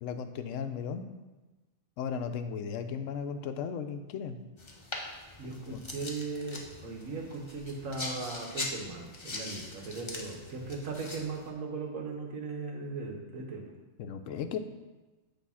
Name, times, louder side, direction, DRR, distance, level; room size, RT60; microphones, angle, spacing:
voice 1, 0.0-1.0 2.0-4.4 5.7-5.8 14.0-14.6, left 7 dB, 80° left, 8 dB, 0.9 m, -36 dB
sound 1, 4.6-11.5, left 2 dB, 25° left, 0.7 m, -42 dB
voice 2, 5.4-13.6, right 3 dB, 90° right, 1 dB, 1.5 m, -38 dB
8.4 x 3.3 x 5.5 m, 1.1 s
omnidirectional pair, 1.3 m